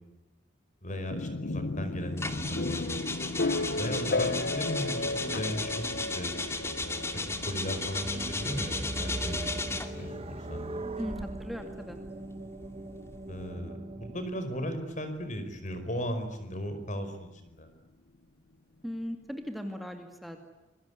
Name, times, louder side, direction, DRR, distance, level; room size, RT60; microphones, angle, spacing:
voice 1, 0.8-3.0 3.8-6.4 6.8-9.5 10.0-10.8 13.3-17.7, equal, 45° left, 9 dB, 5.1 m, -37 dB
sound 1, 1.1-14.9, left 2 dB, 60° left, 1.0 m, -35 dB
sound 2, 2.2-10.0 10.9-13.4, left 2 dB, 15° left, 2.4 m, -35 dB
sound 3, 8.0-14.3, right 1 dB, 35° right, 1.1 m, -39 dB
voice 2, 11.0-12.0 18.8-20.4, equal, ahead, 4 dB, 2.4 m, -38 dB
27.5 x 22.5 x 9.7 m, 1.0 s
head